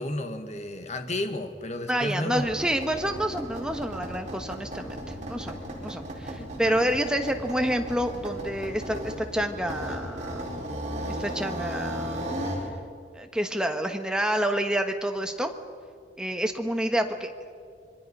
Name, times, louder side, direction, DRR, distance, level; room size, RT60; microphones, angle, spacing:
voice 1, 0.0-2.5 6.4-6.9, left 1 dB, 40° left, 7 dB, 1.5 m, -32 dB
voice 2, 1.9-5.6 5.8-10.5 11.1-12.3 13.1-15.5 16.2-17.3, right 1 dB, 5° right, 5 dB, 1.3 m, -28 dB
sound 1, 2.3-12.7, equal, 40° right, 4.6 m, -35 dB
26.0 x 23.0 x 5.5 m, 2.1 s
head